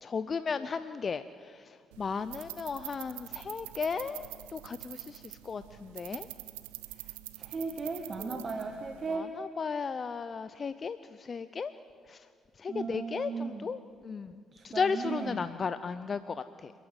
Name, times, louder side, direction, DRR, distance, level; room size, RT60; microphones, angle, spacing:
voice 1, 0.0-1.2 2.0-6.3 8.2-8.4 9.1-11.0 11.3-11.7 12.1-12.2 12.6-13.8 14.0-14.3 14.6-16.7, left 5 dB, 40° left, 13 dB, 0.7 m, -35 dB
sound 1, 1.9-9.2, right 19 dB, 80° right, 0.7 m, -45 dB
voice 2, 7.4-9.3 12.7-13.7 14.5-15.4, right 4 dB, 40° right, 5 dB, 1.5 m, -36 dB
28.5 x 11.0 x 8.1 m, 2.1 s
hypercardioid pair, 45°, 0 cm